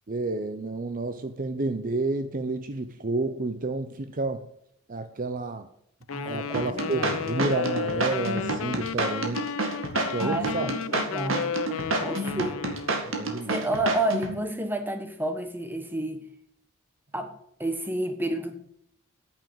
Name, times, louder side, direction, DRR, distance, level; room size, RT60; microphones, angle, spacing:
voice 1, 0.1-4.5 4.9-5.7 6.2-9.5 10.1-10.7 12.4-12.5 13.1-13.9, right 2 dB, 40° right, 9 dB, 0.6 m, -30 dB
Wind instrument woodwind instrument, 6.1-13.1, left 6 dB, 70° left, 0.5 m, -33 dB
voice 2, 6.1-7.2 10.2-11.5 12.0-12.6 13.5-16.2 17.1-17.3 17.6-18.6, right 1 dB, 10° right, 7 dB, 1.3 m, -30 dB
sound 1, 6.5-14.4, right 2 dB, 65° right, 2.1 m, -29 dB
9.1 x 7.5 x 8.7 m, 0.73 s
head